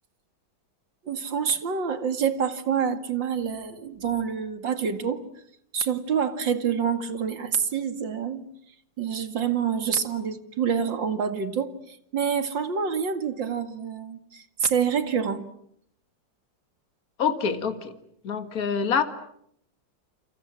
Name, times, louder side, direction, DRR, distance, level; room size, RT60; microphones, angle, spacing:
voice 1, 1.0-5.2 5.7-8.5 9.0-15.5, right 7 dB, 75° right, 9 dB, 2.8 m, -27 dB
voice 2, 17.2-17.9 18.2-19.0, left 6 dB, 50° left, 9 dB, 2.3 m, -25 dB
29.5 x 27.0 x 7.5 m, 0.71 s
omnidirectional pair, 2.0 m